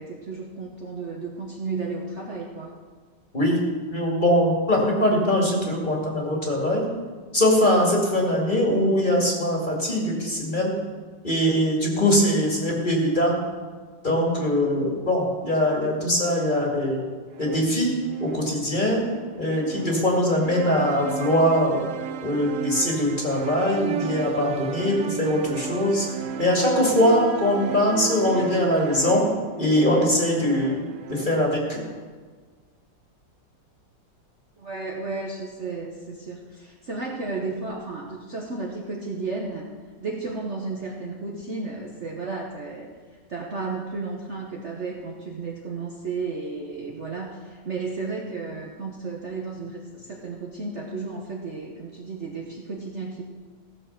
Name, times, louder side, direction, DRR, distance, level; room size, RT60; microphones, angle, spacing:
voice 1, 0.0-2.7 34.6-39.7 40.0-42.9 43.3-53.2, right 3 dB, 45° right, -1 dB, 1.2 m, -33 dB
voice 2, 3.9-6.8 7.3-10.7 11.2-13.4 14.0-17.0 17.4-17.9 18.2-19.1 19.4-21.8 22.2-26.1 26.4-29.2 29.6-30.8 31.1-31.8, left 1 dB, 25° left, -1 dB, 2.4 m, -22 dB
sound 1, 17.3-31.2, right 8 dB, 85° right, 0.6 m, -34 dB
16.0 x 7.1 x 6.5 m, 1.5 s
omnidirectional pair, 2.0 m